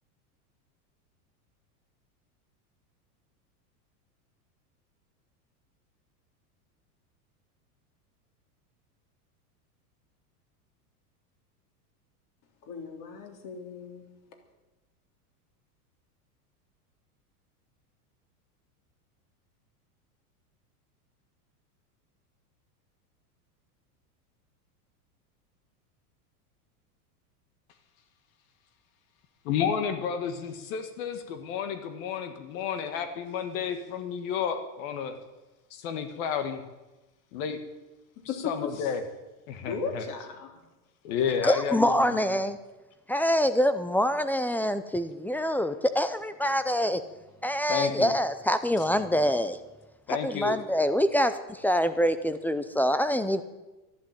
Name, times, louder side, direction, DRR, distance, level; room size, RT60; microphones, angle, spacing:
voice 1, 12.6-14.1 38.2-38.5 39.7-40.5, left 5 dB, 45° left, 3 dB, 3.5 m, -36 dB
voice 2, 29.4-35.1 35.7-36.6 37.3-37.6 38.4-39.0 39.5-40.1 41.0-42.4 47.7-48.1 50.1-50.6, left 7 dB, 60° left, 8 dB, 1.7 m, -31 dB
voice 3, 41.4-42.6 43.1-47.0 47.4-49.6 50.1-53.4, equal, 5° left, 11 dB, 0.4 m, -25 dB
12.0 x 11.5 x 8.9 m, 1.1 s
supercardioid pair, 120°, 45 cm